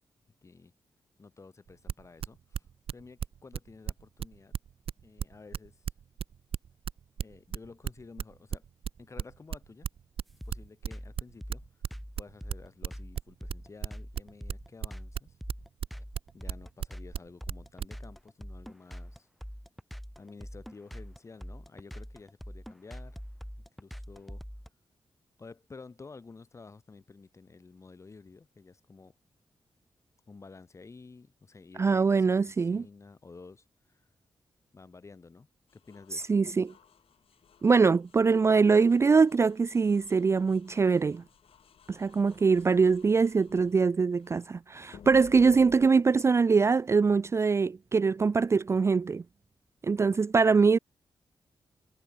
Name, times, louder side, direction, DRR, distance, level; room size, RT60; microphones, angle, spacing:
voice 1, 0.4-0.7 1.2-2.6 2.9-4.6 5.0-5.9 7.2-8.6 9.0-9.9 10.5-11.6 12.2-15.4 16.3-19.3 20.2-23.2 23.8-24.4 25.4-29.1 30.3-34.0 34.7-35.5 35.7-36.3, left 4 dB, 30° left, 7.8 m, -51 dB
sound 1, 1.7-17.9, right 8 dB, 80° right, 3.4 m, -34 dB
sound 2, 10.4-24.7, equal, ahead, 2.5 m, -43 dB
voice 2, 31.8-32.8 36.1-36.7 37.6-41.2 41.9-49.2 49.8-50.8, right 5 dB, 30° right, 0.4 m, -23 dB
sound 3, 35.7-44.5 44.9-45.9, left 8 dB, 85° left, 5.3 m, -56 dB
wide cardioid pair, 160°, 9 cm